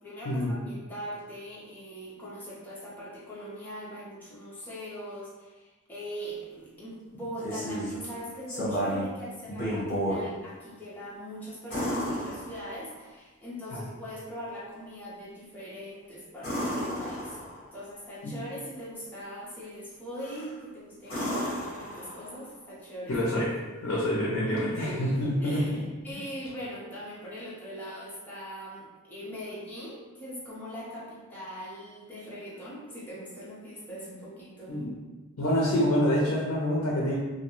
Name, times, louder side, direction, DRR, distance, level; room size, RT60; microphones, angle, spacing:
voice 1, 0.0-17.4 17.7-23.2 24.5-34.8, equal, 10° left, -9 dB, 0.6 m, -41 dB
sound 1, 7.1-8.0 8.5-9.1 9.5-10.2 11.7-13.0 16.4-17.7 20.2-20.5 21.0-22.4 24.6-24.7, equal, 45° left, 1.1 m, -32 dB
voice 2, 23.1-23.5 23.8-25.8 34.7-35.0 35.4-37.1, equal, 65° left, -4 dB, 0.5 m, -26 dB
2.3 x 2.1 x 2.9 m, 1.2 s
head